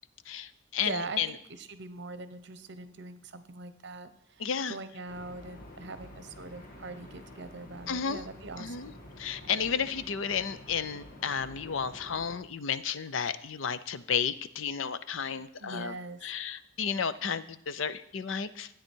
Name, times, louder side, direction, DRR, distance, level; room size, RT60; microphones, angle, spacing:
voice 1, 0.3-1.3 4.4-4.8 7.9-8.2 8.6-15.9 16.2-18.7, left 7 dB, 75° left, 14 dB, 0.6 m, -32 dB
voice 2, 0.8-4.4 4.7-9.0 15.6-16.2, right 3 dB, 60° right, 11 dB, 0.9 m, -42 dB
sound 1, 5.1-12.3, left 1 dB, 45° left, 2.0 m, -49 dB
13.5 x 9.0 x 4.6 m, 0.77 s
head